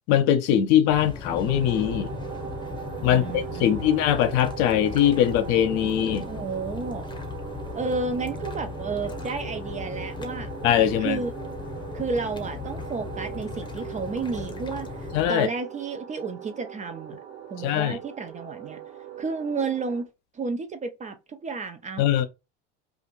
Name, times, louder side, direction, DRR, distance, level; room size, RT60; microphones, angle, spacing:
voice 1, 0.1-2.1 3.0-6.3 10.6-11.2 15.1-15.5 17.6-18.0 22.0-22.3, left 10 dB, 60° left, 0.7 m, -21 dB
sound 1, 0.9-15.3, left 4 dB, 15° left, 0.8 m, -37 dB
sound 2, 1.4-20.0, right 9 dB, 50° right, 1.3 m, -40 dB
voice 2, 3.1-4.0 6.3-7.1 7.7-10.5 11.0-11.3 11.9-17.1 17.5-18.8 19.2-20.1 20.3-22.1, right 4 dB, 20° right, 0.4 m, -32 dB
2.5 x 2.4 x 2.9 m
hypercardioid pair, 80°, 34 cm